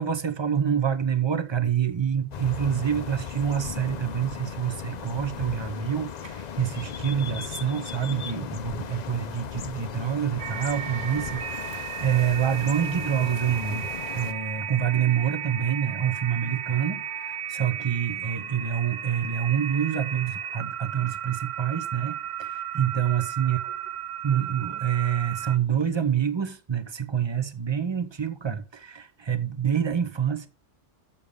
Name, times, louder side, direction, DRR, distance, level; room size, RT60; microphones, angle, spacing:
voice 1, 0.0-13.9 14.1-23.6 24.2-30.5, right 8 dB, 30° right, 0.6 m, -27 dB
sound 1, 2.3-14.3, left 7 dB, 50° left, 0.5 m, -37 dB
sound 2, 10.4-25.6, right 9 dB, 65° right, 0.8 m, -34 dB
7.0 x 6.9 x 5.2 m
omnidirectional pair, 1.2 m